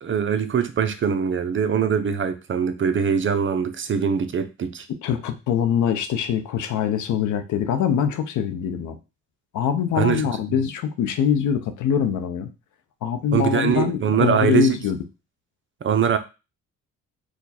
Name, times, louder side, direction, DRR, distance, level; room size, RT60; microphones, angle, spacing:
voice 1, 0.0-4.9 9.9-10.3 13.3-14.8 15.8-16.2, right 7 dB, 40° right, 9 dB, 0.6 m, -22 dB
voice 2, 5.0-9.0 9.5-12.5 13.0-15.0, left 8 dB, 75° left, 9 dB, 0.7 m, -23 dB
4.8 x 2.3 x 4.1 m, 0.29 s
cardioid pair, 90°, 30 cm